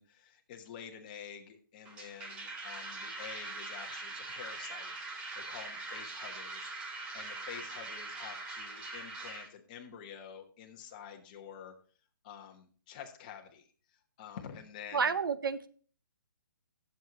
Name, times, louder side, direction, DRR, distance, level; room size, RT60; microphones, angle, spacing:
voice 1, 0.0-11.7 12.2-13.7 14.2-15.1, left 8 dB, 25° left, 4 dB, 1.0 m, -48 dB
sound 1, 1.9-9.5, right 3 dB, 10° right, 0.6 m, -42 dB
voice 2, 14.9-15.7, right 6 dB, 80° right, 13 dB, 0.8 m, -30 dB
11.5 x 7.6 x 3.0 m, 0.43 s
hypercardioid pair, 170°, 11 cm